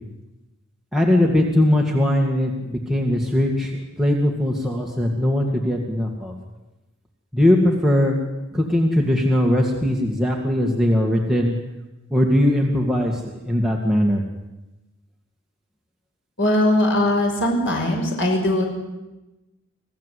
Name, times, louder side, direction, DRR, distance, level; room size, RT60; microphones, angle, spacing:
voice 1, 0.9-6.3 7.3-8.1 8.5-11.5 12.1-14.2, left 1 dB, ahead, -1 dB, 2.2 m, -20 dB
voice 2, 16.4-18.6, left 1 dB, 60° left, 1 dB, 5.9 m, -20 dB
27.0 x 17.0 x 8.4 m, 1.0 s
head